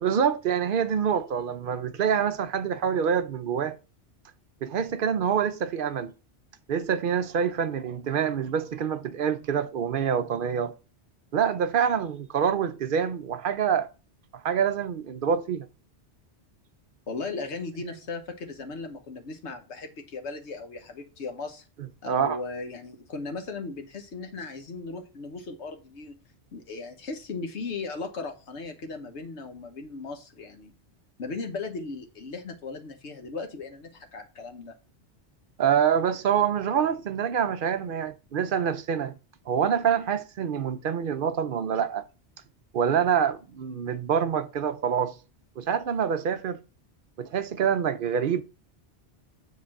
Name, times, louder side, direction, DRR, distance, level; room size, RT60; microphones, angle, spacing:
voice 1, 0.0-3.8 4.6-6.1 6.7-10.7 11.3-13.9 14.4-15.7 21.8-22.4 35.6-39.2 39.5-42.0 42.7-45.1 45.6-46.6 47.2-48.4, right 7 dB, 60° right, 0.7 m, -26 dB
voice 2, 17.1-21.6 22.0-26.2 26.5-30.7 31.2-34.8, left 3 dB, 80° left, 1.3 m, -37 dB
7.5 x 3.1 x 5.8 m
omnidirectional pair, 1.1 m